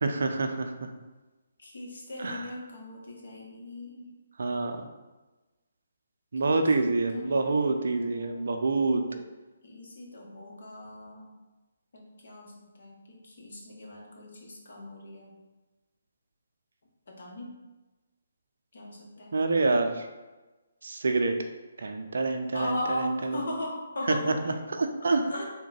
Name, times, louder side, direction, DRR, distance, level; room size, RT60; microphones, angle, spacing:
voice 1, 0.0-0.9 2.2-2.4 4.4-4.8 6.3-9.2 19.3-20.1 20.8-21.4 21.8-23.4 24.1-25.2, right 3 dB, 65° right, 6 dB, 0.4 m, -27 dB
voice 2, 1.6-4.1 6.4-6.6 7.1-8.5 9.6-11.3 11.9-15.3 17.1-17.5 18.7-19.3 22.5-24.4 25.1-25.4, left 1 dB, 60° left, -2 dB, 1.0 m, -39 dB
3.6 x 2.2 x 4.0 m, 1.2 s
figure-of-eight pair, 140°, 0 cm